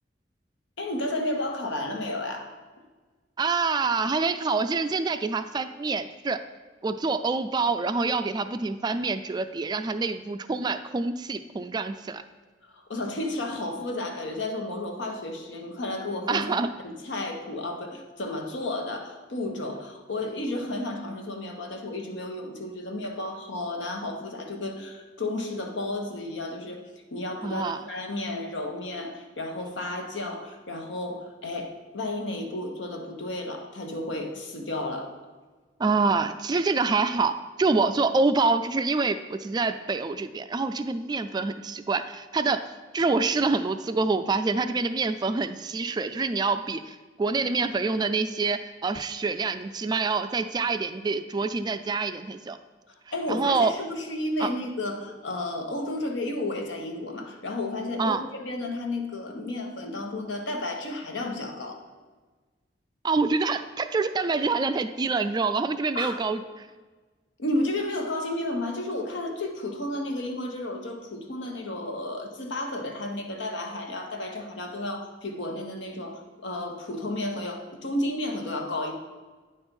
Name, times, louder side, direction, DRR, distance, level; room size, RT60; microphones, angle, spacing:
voice 1, 0.8-2.5 12.6-16.5 16.8-26.8 27.1-35.1 52.9-61.8 65.9-66.2 67.4-78.9, left 1 dB, 85° left, 3 dB, 1.2 m, -32 dB
voice 2, 3.4-6.4 6.8-12.2 16.3-16.7 27.4-27.8 35.8-42.6 42.9-52.6 53.3-53.7 54.4-54.5 58.0-58.2 63.0-66.7, right 4 dB, 25° right, 10 dB, 0.3 m, -26 dB
9.3 x 4.4 x 5.3 m, 1.3 s
head